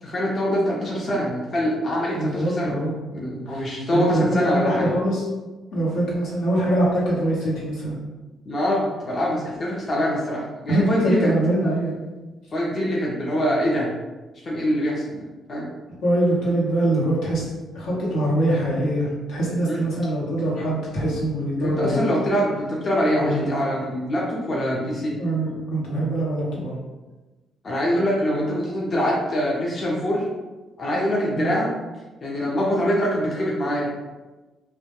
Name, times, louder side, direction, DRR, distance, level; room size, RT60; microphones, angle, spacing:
voice 1, 0.0-2.8 3.1-4.9 8.5-11.3 12.5-13.9 14.5-15.7 19.6-19.8 21.6-25.2 25.5-25.6 27.6-30.3 30.8-31.7 32.2-33.9, equal, 45° left, -4 dB, 0.5 m, -24 dB
voice 2, 2.1-2.9 3.5-5.2 5.7-7.9 10.7-11.9 16.0-17.4 17.7-22.1 23.2-23.4 25.2-26.7 31.3-31.5, right 1 dB, 85° left, -6 dB, 0.8 m, -23 dB
2.2 x 2.1 x 2.8 m, 1.2 s
cardioid pair, 90°, 0 cm